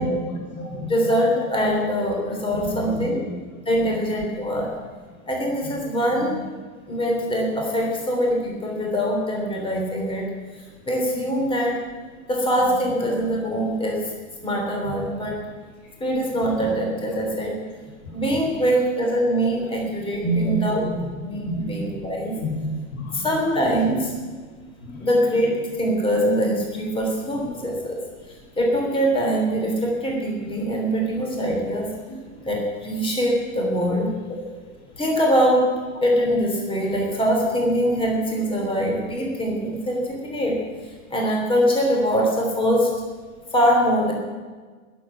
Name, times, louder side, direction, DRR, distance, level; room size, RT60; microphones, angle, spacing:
voice 1, 0.0-0.9 2.5-3.3 3.7-3.9 5.6-5.8 14.8-14.9 18.0-18.1 19.6-19.7 20.2-21.1 21.4-22.6 22.9-23.3 24.8-25.1 32.1-32.4, right 1 dB, 80° left, -1 dB, 5.5 m, -30 dB
voice 2, 0.9-3.2 3.6-4.7 5.3-6.3 6.9-10.3 10.5-11.8 12.3-14.1 14.4-15.4 16.0-17.5 17.9-20.8 21.2-22.3 23.1-24.1 25.0-28.0 28.6-31.9 32.4-34.1 35.0-35.7 36.0-42.9 43.5-44.1, equal, 15° left, 0 dB, 3.1 m, -23 dB
20.0 x 7.8 x 5.9 m, 1.4 s
hypercardioid pair, 125°, 41 cm